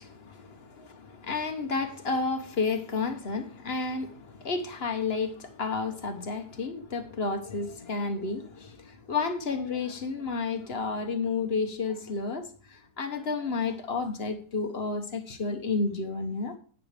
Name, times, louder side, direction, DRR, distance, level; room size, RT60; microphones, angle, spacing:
voice 1, 0.0-16.6, left 4 dB, 45° left, 1.1 m, -31 dB
10.5 x 9.1 x 3.3 m
omnidirectional pair, 1.6 m